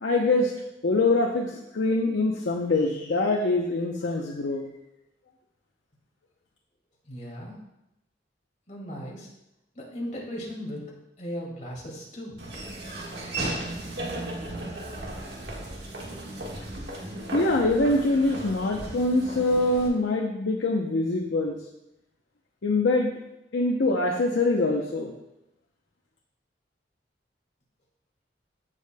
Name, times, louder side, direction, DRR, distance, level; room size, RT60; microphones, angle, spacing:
voice 1, 0.0-0.5 0.8-4.7 17.3-21.6 22.6-23.1 23.5-25.1, left 2 dB, 85° left, 0 dB, 0.7 m, -24 dB
voice 2, 7.1-7.6 8.7-9.3 9.7-10.8 11.2-12.5, equal, 45° left, -3 dB, 2.3 m, -37 dB
Laughter / Walk footsteps, 12.4-19.9, right 1 dB, 65° right, 1.6 m, -35 dB
14.5 x 5.0 x 2.2 m, 0.86 s
head